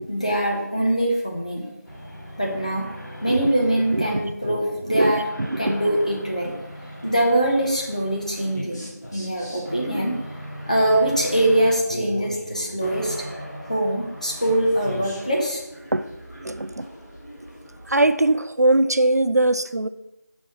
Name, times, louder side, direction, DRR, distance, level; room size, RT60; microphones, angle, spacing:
voice 1, 0.1-1.7 2.4-2.8 3.2-5.3 5.6-6.5 7.0-10.2 10.7-13.2 13.7-15.6, right 1 dB, 25° left, 1.0 m, -23 dB
sound 1, 1.8-18.2, equal, 75° left, 2.6 m, -38 dB
voice 2, 3.9-4.3 4.9-5.2 5.5-5.8 15.9-16.1 16.4-16.9 17.9-19.9, right 2 dB, 65° right, 0.4 m, -21 dB
6.3 x 4.1 x 5.8 m
figure-of-eight pair, 175°, 10 cm